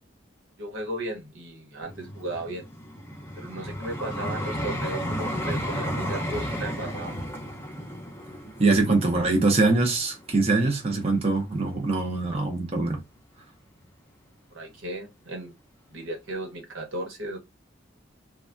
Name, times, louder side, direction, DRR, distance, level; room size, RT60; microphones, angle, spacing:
voice 1, 0.6-2.6 3.3-7.2 14.5-15.6 15.9-17.4, right 1 dB, 85° right, 1.1 m, -35 dB
Vehicle, 1.8-10.9 11.5-11.7, equal, 10° left, 0.6 m, -33 dB
voice 2, 8.6-13.0, right 3 dB, 30° right, 0.7 m, -23 dB
3.3 x 2.3 x 2.5 m
head